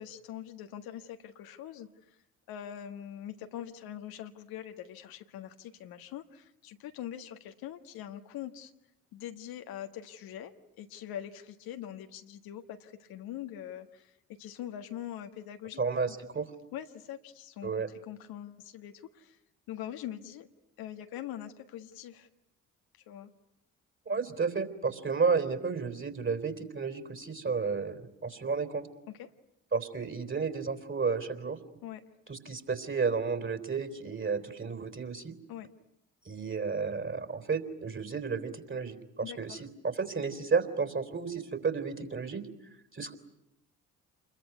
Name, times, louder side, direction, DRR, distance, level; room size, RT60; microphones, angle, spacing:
voice 1, 0.0-2.1 2.5-8.7 9.1-14.1 14.4-16.1 16.7-19.4 19.7-20.5 20.8-22.3 23.1-23.3 29.1-29.3 31.8-32.0 35.5-35.7 39.2-39.6, left 11 dB, 65° left, 7 dB, 1.6 m, -43 dB
voice 2, 15.8-16.5 17.6-17.9 24.1-28.9 29.7-31.6 32.3-35.3 36.3-42.4 42.9-43.1, right 5 dB, 30° right, 9 dB, 3.7 m, -32 dB
28.0 x 22.0 x 9.4 m, 0.85 s
hypercardioid pair, 50°, 39 cm